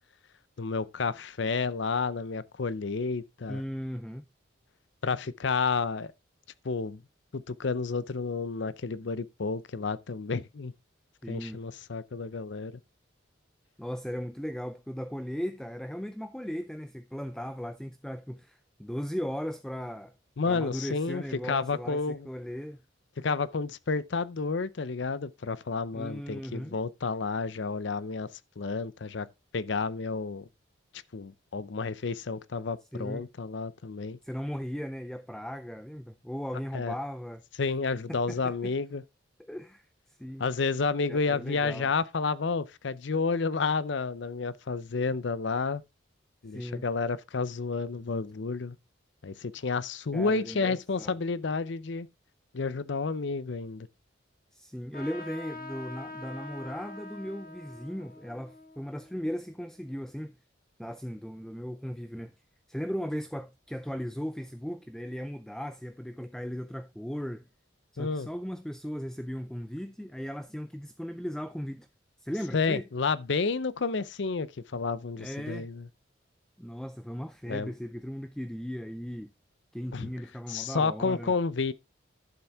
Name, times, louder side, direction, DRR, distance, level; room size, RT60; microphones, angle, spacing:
voice 1, 0.6-3.6 5.0-6.1 6.6-7.0 7.3-10.7 11.3-12.7 20.4-22.3 23.2-28.3 28.6-29.3 29.5-30.5 31.1-34.2 36.7-36.9 37.6-39.0 40.4-45.8 46.4-48.8 49.2-52.1 52.5-53.9 68.0-68.3 72.5-75.9 77.5-77.7 79.9-80.1 80.5-81.7, left 4 dB, 65° left, 0.6 m, -30 dB
voice 2, 3.5-4.2 11.2-11.6 13.8-20.1 20.5-22.8 25.9-26.8 32.9-33.3 34.2-37.4 38.1-38.7 39.4-40.5 41.1-41.9 46.5-46.9 50.1-51.2 54.5-60.3 60.8-62.3 62.7-67.5 67.9-71.9 72.2-72.8 75.2-75.7 76.6-79.3 79.7-81.4, equal, 5° left, 0.4 m, -37 dB
Trumpet, 54.9-59.9, left 2 dB, 45° left, 1.7 m, -45 dB
11.0 x 7.1 x 3.5 m
head